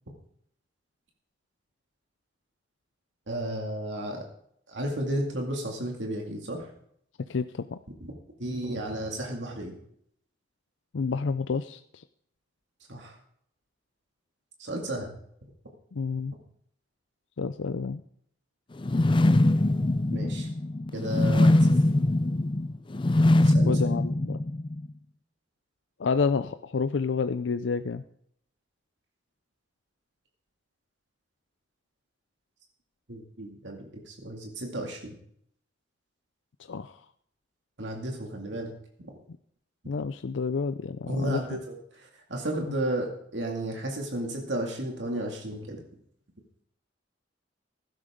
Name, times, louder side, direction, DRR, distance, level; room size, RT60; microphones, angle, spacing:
voice 1, 3.3-4.2 4.7-6.7 8.4-9.7 12.9-13.2 14.6-15.1 20.1-20.5 20.9-21.7 23.4-23.8 33.1-35.1 37.8-38.7 41.1-45.8, right 1 dB, 75° right, 1 dB, 2.3 m, -33 dB
voice 2, 7.3-7.8 10.9-12.0 15.9-16.3 17.4-18.0 23.7-24.4 26.0-28.0 36.7-37.0 39.9-41.6, left 5 dB, 85° left, 11 dB, 0.5 m, -29 dB
sound 1, 18.8-24.9, left 1 dB, 25° left, 0.5 m, -22 dB
15.5 x 12.5 x 3.7 m, 0.68 s
head